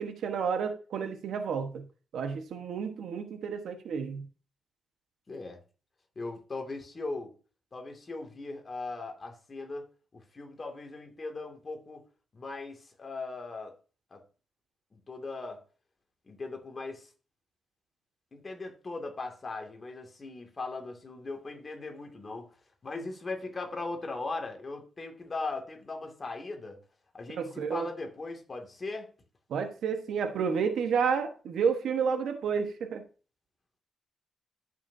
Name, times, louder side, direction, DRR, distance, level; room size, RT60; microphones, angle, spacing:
voice 1, 0.0-1.8 2.1-4.3 27.4-27.9 29.5-33.0, right 6 dB, 75° right, 1.2 m, -30 dB
voice 2, 5.3-5.6 6.2-7.3 7.7-9.9 10.1-12.0 12.3-13.7 14.1-14.2 14.9-15.6 16.3-17.1 18.3-22.5 22.8-26.8 27.1-29.1, left 3 dB, 35° left, 2.3 m, -39 dB
13.5 x 6.0 x 2.7 m
cardioid pair, 95°, 0 cm